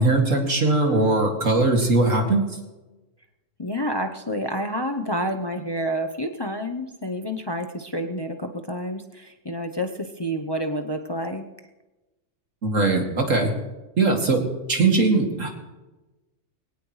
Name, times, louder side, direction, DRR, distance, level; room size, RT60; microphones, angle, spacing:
voice 1, 0.0-2.5 12.6-13.5 14.0-14.4 14.7-15.5, right 3 dB, 80° right, 2 dB, 2.7 m, -20 dB
voice 2, 3.6-11.5, equal, 25° left, 4 dB, 0.7 m, -29 dB
21.0 x 18.0 x 3.2 m, 1.1 s
omnidirectional pair, 1.3 m